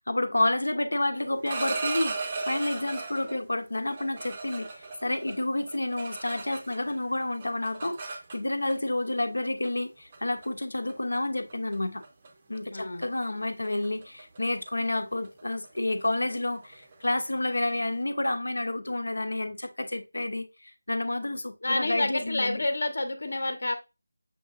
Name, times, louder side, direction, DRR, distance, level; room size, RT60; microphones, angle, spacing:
voice 1, 0.0-2.1 2.5-4.7 5.0-12.0 12.5-22.6, left 1 dB, 85° left, 0.8 m, -30 dB
sound 1, 1.3-3.4 3.9-6.9 7.2-8.7 9.6-9.8 10.1-10.5 10.9-11.2 11.5-11.7 12.0-12.3 12.5-17.9, right 3 dB, 20° right, 0.6 m, -37 dB
voice 2, 12.7-13.0 21.6-23.8, left 2 dB, 60° left, 0.9 m, -29 dB
6.7 x 2.8 x 2.4 m
figure-of-eight pair, 175°, 0 cm